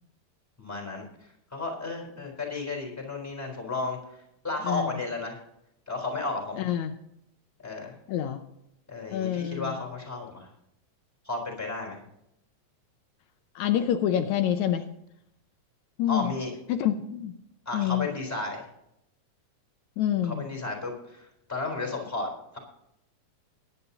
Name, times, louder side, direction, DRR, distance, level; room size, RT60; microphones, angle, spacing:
voice 1, 0.6-1.1 1.5-5.4 5.9-6.7 7.6-7.9 8.9-10.5 11.2-12.0 16.1-16.5 17.7-18.6 20.2-22.3, left 3 dB, 5° left, 0 dB, 3.6 m, -33 dB
voice 2, 6.6-6.9 8.1-8.4 9.1-9.8 13.6-14.8 16.0-16.3 16.7-17.3 17.7-18.1 20.0-20.5, left 10 dB, 80° left, 7 dB, 2.0 m, -27 dB
21.5 x 9.8 x 2.9 m, 0.81 s
omnidirectional pair, 3.3 m